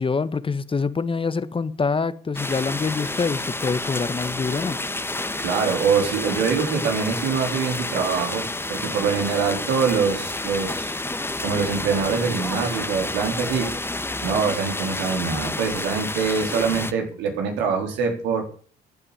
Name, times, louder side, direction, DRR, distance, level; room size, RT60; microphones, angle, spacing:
voice 1, 0.0-4.8, left 4 dB, 30° left, 1.3 m, -25 dB
sound 1, 2.4-16.9, left 2 dB, 10° left, 1.6 m, -30 dB
voice 2, 5.4-11.0 11.4-13.8 14.2-18.5, right 5 dB, 90° right, 4.2 m, -24 dB
14.5 x 9.7 x 7.0 m
cardioid pair, 75°, 18 cm